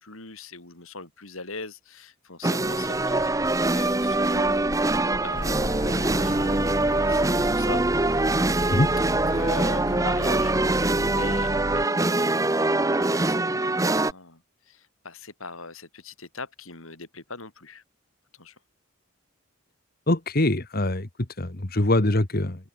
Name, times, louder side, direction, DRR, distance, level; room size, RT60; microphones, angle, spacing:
voice 1, 0.0-8.3 9.3-17.8 18.3-18.6, left 3 dB, 80° left, 6.0 m, -41 dB
sound 1, 2.4-14.1, right 2 dB, 15° right, 0.9 m, -24 dB
sound 2, 2.6-7.8, equal, 10° left, 4.2 m, -42 dB
sound 3, 5.3-11.9, right 1 dB, 40° right, 4.6 m, -33 dB
voice 2, 20.1-21.1 21.4-22.6, left 1 dB, 45° left, 1.6 m, -23 dB
open air
head